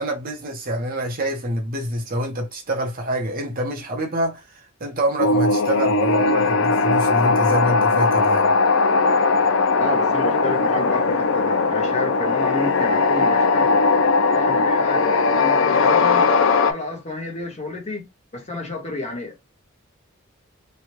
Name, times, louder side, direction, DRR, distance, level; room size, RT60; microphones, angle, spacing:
voice 1, 0.0-4.4 4.8-8.5, right 1 dB, 40° right, 0.9 m, -26 dB
sound 1, 5.2-16.7, left 4 dB, 65° left, 0.5 m, -19 dB
voice 2, 9.7-13.8 14.2-16.3 16.6-18.1 18.3-19.4, left 2 dB, 30° left, 1.1 m, -30 dB
3.3 x 2.3 x 2.9 m
head